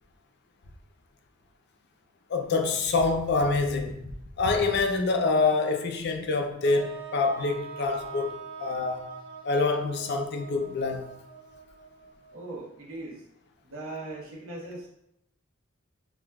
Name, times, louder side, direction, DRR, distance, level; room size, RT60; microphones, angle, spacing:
voice 1, 2.3-4.1 4.4-8.3 8.6-9.1 9.4-11.1, left 3 dB, 55° left, 0.4 m, -26 dB
sound 1, 6.6-12.7, right 5 dB, 30° right, 0.6 m, -43 dB
voice 2, 12.3-13.3 13.6-14.9, right 2 dB, 90° right, 1.0 m, -39 dB
5.8 x 2.4 x 2.2 m
head